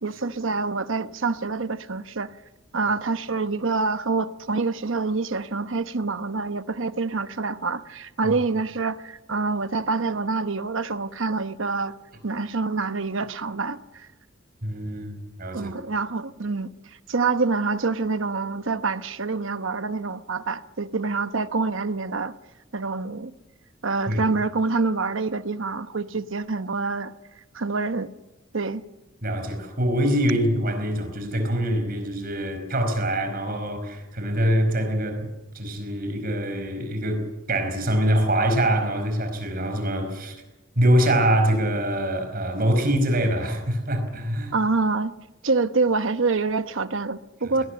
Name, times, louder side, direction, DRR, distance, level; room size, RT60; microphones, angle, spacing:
voice 1, 0.0-2.3 2.7-11.9 12.2-14.1 15.5-16.7 17.1-22.3 22.7-23.3 23.8-27.1 27.5-28.1 28.5-28.8 44.5-45.1 45.4-47.6, right 4 dB, 70° right, 1.0 m, -26 dB
voice 2, 14.6-15.7 24.1-24.2 29.2-35.3 35.5-40.4 40.7-44.5 47.4-47.5, right 1 dB, 45° right, 4.8 m, -24 dB
22.0 x 18.5 x 8.6 m
head